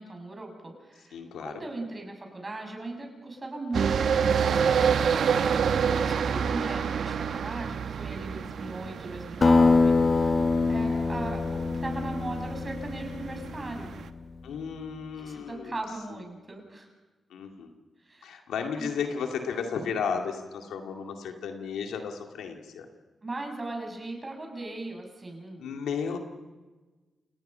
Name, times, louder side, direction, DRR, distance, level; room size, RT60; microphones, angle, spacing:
voice 1, 0.0-5.7 6.0-13.9 15.2-16.9 18.1-18.4 18.8-18.9 23.2-25.7, right 2 dB, 35° right, 3 dB, 7.2 m, -38 dB
voice 2, 1.1-1.6 14.4-15.8 16.1-16.3 17.3-17.7 18.2-22.9 25.6-26.2, left 6 dB, 85° left, 4 dB, 2.2 m, -34 dB
sound 1, 3.7-14.1, right 7 dB, 75° right, 1.0 m, -28 dB
Acoustic guitar, 9.4-14.2, left 3 dB, 40° left, 1.4 m, -24 dB
29.5 x 19.0 x 5.6 m, 1.3 s
supercardioid pair, 50°, 0 cm